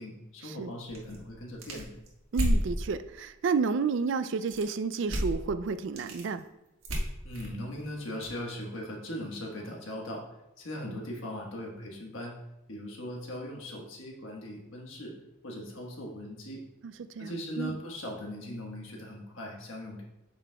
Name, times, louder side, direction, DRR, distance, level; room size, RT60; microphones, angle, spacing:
voice 1, 0.0-1.9 7.2-10.2 10.6-12.4 12.7-15.1 15.4-16.6 17.2-20.0, equal, 65° left, -1 dB, 1.3 m, -39 dB
sound 1, 0.9-2.7 4.4-4.8 5.1-5.4 5.7-6.3 6.8-8.3, equal, 85° right, 1.3 m, -31 dB
voice 2, 2.3-6.4 10.9-11.0 16.8-17.7, right 5 dB, 60° right, 13 dB, 0.3 m, -31 dB
8.1 x 6.0 x 2.3 m, 0.91 s
head